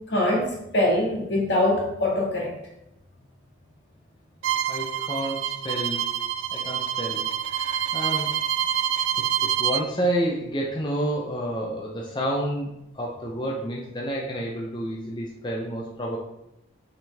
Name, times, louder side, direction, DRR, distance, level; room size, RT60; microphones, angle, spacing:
voice 1, 0.1-2.5, left 1 dB, 70° left, -3 dB, 2.0 m, -23 dB
Bowed string instrument, 4.4-9.8, right 10 dB, 85° right, 0.4 m, -27 dB
voice 2, 4.6-6.1 6.5-8.5 9.4-16.2, right 1 dB, 25° left, -2 dB, 0.7 m, -30 dB
6.2 x 5.1 x 3.5 m, 0.83 s
head